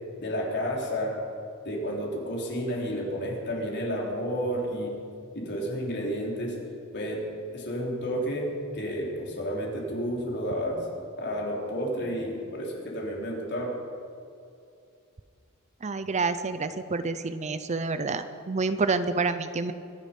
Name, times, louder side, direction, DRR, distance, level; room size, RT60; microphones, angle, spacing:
voice 1, 0.2-1.2 1.6-4.9 5.3-6.6 6.9-7.2 7.5-8.5 8.7-10.8 11.2-13.7, equal, 50° left, -2 dB, 3.7 m, -31 dB
voice 2, 15.8-19.7, right 4 dB, 30° right, 11 dB, 0.6 m, -28 dB
25.0 x 10.5 x 5.3 m, 2.5 s
head